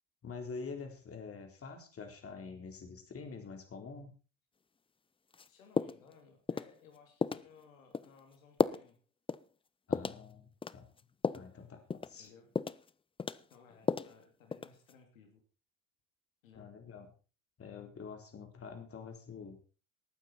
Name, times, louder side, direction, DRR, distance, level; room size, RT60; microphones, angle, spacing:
voice 1, 0.2-4.1 9.9-10.9 11.3-12.3 16.6-17.1 17.6-19.6, left 5 dB, 35° left, 5 dB, 4.0 m, -46 dB
sound 1, 5.3-5.5 5.8-6.1 6.5-6.7 7.2-7.5 7.9-8.1 8.6-8.9 9.3-9.4 9.9-10.2 10.6-11.5 11.9-12.2 12.6-12.9 13.2-14.2 14.5-14.9, left 5 dB, 15° left, 0.5 m, -33 dB
voice 2, 5.5-9.0 12.2-12.5 13.5-15.4 16.4-16.7, left 6 dB, 85° left, 4 dB, 2.9 m, -60 dB
19.5 x 9.2 x 4.4 m, 0.35 s
hypercardioid pair, 70°, 39 cm